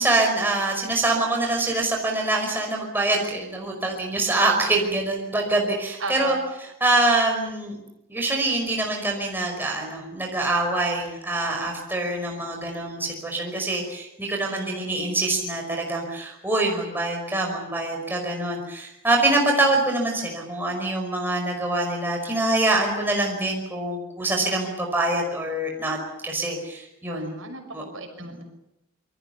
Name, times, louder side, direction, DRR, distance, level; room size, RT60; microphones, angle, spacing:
voice 1, 0.0-6.3 6.8-7.8 8.1-26.0 26.2-27.3 27.7-27.8 28.3-28.4, right 2 dB, 10° right, 0 dB, 5.2 m, -25 dB
voice 2, 6.0-6.4 14.5-15.0 27.1-28.4, right 3 dB, 65° right, 5 dB, 6.2 m, -36 dB
28.0 x 23.5 x 7.0 m, 0.85 s
head